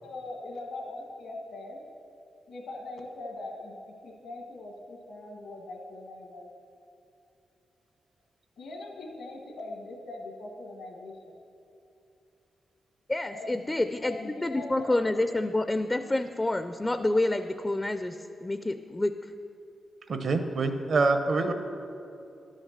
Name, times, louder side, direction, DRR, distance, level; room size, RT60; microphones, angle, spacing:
voice 1, 0.0-1.8 2.5-3.7 4.0-6.5 8.6-11.4 13.3-13.5 14.0-15.0, left 2 dB, 80° left, 2 dB, 1.5 m, -41 dB
voice 2, 13.1-19.1, left 2 dB, 20° left, 9 dB, 0.4 m, -28 dB
voice 3, 20.1-21.5, right 3 dB, 60° right, 7 dB, 0.8 m, -25 dB
11.0 x 6.4 x 6.5 m, 2.7 s
cardioid pair, 80°, 0 cm